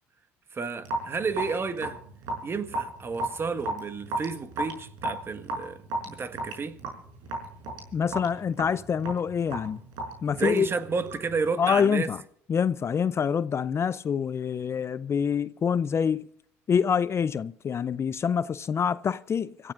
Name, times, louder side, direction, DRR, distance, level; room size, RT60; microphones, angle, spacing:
voice 1, 0.5-2.0 2.4-6.8 10.3-12.1, right 4 dB, 35° right, 1.6 m, -31 dB
Raindrop / Drip, 0.8-11.4, right 2 dB, 70° right, 5.7 m, -35 dB
voice 2, 7.9-9.8 10.2-10.7 11.6-12.2 12.5-16.3 16.7-19.7, left 7 dB, 35° left, 0.5 m, -26 dB
26.0 x 15.0 x 2.6 m
hypercardioid pair, 65°, 7 cm